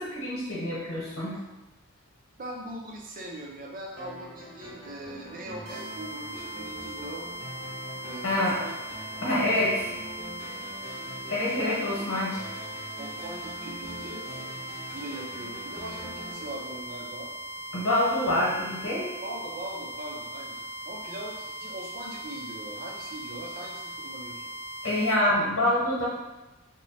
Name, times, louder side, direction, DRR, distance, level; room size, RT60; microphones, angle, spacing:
voice 1, 0.0-1.4 8.2-8.6 9.2-9.7 11.3-12.3 17.7-19.1 24.8-26.1, left 1 dB, 80° left, -5 dB, 1.1 m, -26 dB
voice 2, 2.4-7.2 8.0-8.7 9.4-9.6 9.9-10.0 11.6-12.0 13.0-14.2 14.9-17.3 19.2-24.4, right 1 dB, 40° right, 0 dB, 0.6 m, -41 dB
sound 1, 4.0-17.5, equal, 40° left, 0.8 m, -44 dB
sound 2, 5.7-25.2, right 1 dB, 80° right, 0.8 m, -39 dB
3.0 x 2.2 x 4.1 m, 1.0 s
head